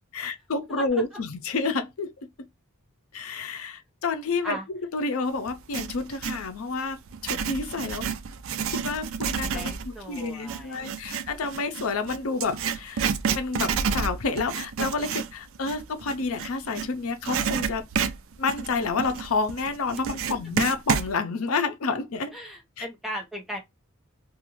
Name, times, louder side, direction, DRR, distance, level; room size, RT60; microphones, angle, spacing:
voice 1, 0.1-2.1 3.1-4.6 4.9-8.1 8.7-13.1 13.4-17.8 18.4-22.4 22.8-22.9, left 4 dB, 75° left, 0.5 m, -29 dB
voice 2, 0.7-1.0 4.4-4.7 9.4-11.3 22.3-23.6, right 1 dB, ahead, 0.8 m, -37 dB
Writing, 5.5-6.5 7.1-16.9 17.2-21.1, right 6 dB, 65° right, 0.4 m, -30 dB
2.5 x 2.4 x 2.9 m
head